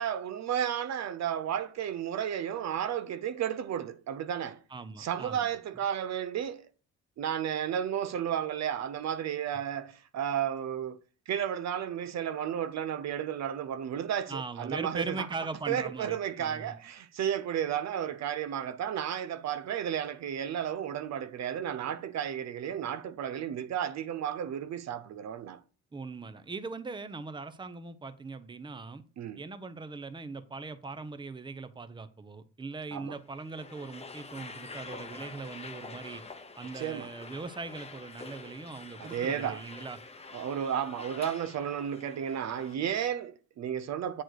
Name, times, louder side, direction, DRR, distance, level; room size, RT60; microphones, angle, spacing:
voice 1, 0.0-4.6 5.0-6.6 7.2-11.0 11.3-15.3 15.7-25.6 29.2-29.4 32.9-33.2 36.8-37.1 39.0-39.6 40.3-44.2, right 9 dB, 60° right, 0.6 m, -33 dB
voice 2, 4.7-5.5 14.3-16.7 25.9-29.0 29.4-36.2 36.6-40.0, right 3 dB, 15° right, 0.7 m, -40 dB
sound 1, 33.2-42.7, left 4 dB, 20° left, 0.8 m, -47 dB
8.1 x 4.3 x 4.6 m
cardioid pair, 90°, 30 cm